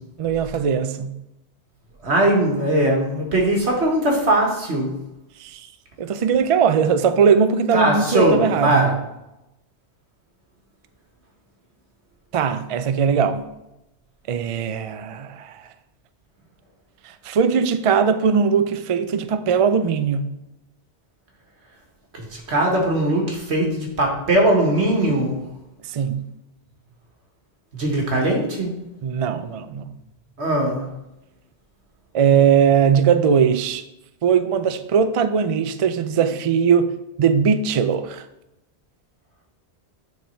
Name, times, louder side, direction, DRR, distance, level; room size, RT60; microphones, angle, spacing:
voice 1, 0.2-1.1 5.4-5.6 6.0-9.0 12.3-13.5 14.3-15.6 17.1-20.3 25.9-26.3 29.0-29.9 32.1-33.8 34.2-36.9 37.2-38.3, right 7 dB, 55° right, 0.4 m, -19 dB
voice 2, 2.0-4.9 7.7-8.9 22.2-25.4 27.7-28.7 30.4-30.9, right 1 dB, 85° right, 1.8 m, -20 dB
9.1 x 3.6 x 4.4 m
omnidirectional pair, 1.1 m